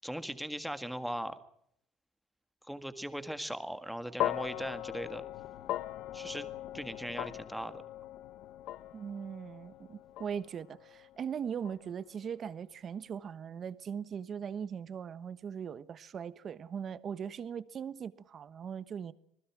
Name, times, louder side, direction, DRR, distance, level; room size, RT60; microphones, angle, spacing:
voice 1, 0.0-1.4 2.7-5.2 6.1-6.5 6.7-7.8, equal, ahead, 1.7 m, -39 dB
sound 1, 4.2-12.5, left 14 dB, 55° left, 0.9 m, -40 dB
voice 2, 8.9-19.1, right 7 dB, 30° right, 1.2 m, -40 dB
26.5 x 20.0 x 6.1 m
cardioid pair, 155°, 0 cm